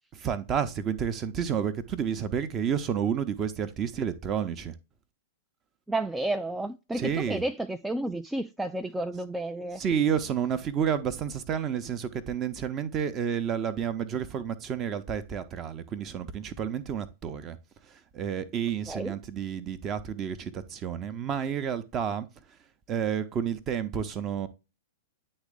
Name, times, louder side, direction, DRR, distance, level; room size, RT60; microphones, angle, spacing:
voice 1, 0.1-4.8 7.0-7.4 9.8-17.6 17.9-22.3 22.9-24.5, right 8 dB, 25° right, 0.7 m, -30 dB
voice 2, 5.9-9.8 18.9-19.1, right 1 dB, 5° right, 0.3 m, -31 dB
9.7 x 3.2 x 3.6 m
figure-of-eight pair, 100°, 0 cm